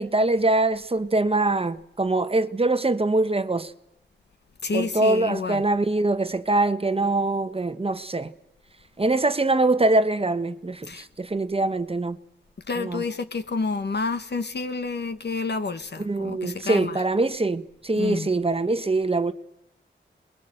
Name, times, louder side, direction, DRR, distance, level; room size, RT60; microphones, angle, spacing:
voice 1, 0.0-3.7 4.7-8.3 9.0-12.2 12.8-13.0 16.0-19.3, right 2 dB, 30° right, 1.1 m, -23 dB
voice 2, 4.6-5.6 10.9-11.0 12.7-17.0 18.0-18.3, left 4 dB, 60° left, 1.6 m, -29 dB
28.5 x 21.5 x 7.9 m
cardioid pair, 60°, 20 cm